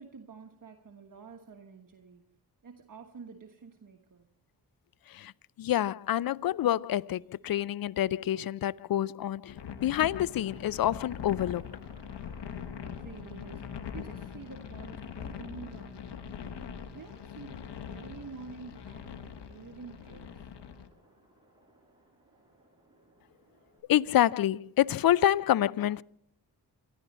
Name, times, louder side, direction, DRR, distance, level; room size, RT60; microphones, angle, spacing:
voice 1, 0.0-2.3 2.6-4.3 12.8-20.5, right 5 dB, 50° right, 1.3 m, -49 dB
voice 2, 5.6-9.6 9.8-11.8 23.9-26.0, left 12 dB, 55° left, 0.5 m, -27 dB
sound 1, 9.5-20.9, left 7 dB, 70° left, 1.3 m, -42 dB
Aircraft, 10.4-23.8, right 1 dB, 10° right, 7.1 m, -61 dB
19.0 x 13.5 x 4.2 m
cardioid pair, 50°, 42 cm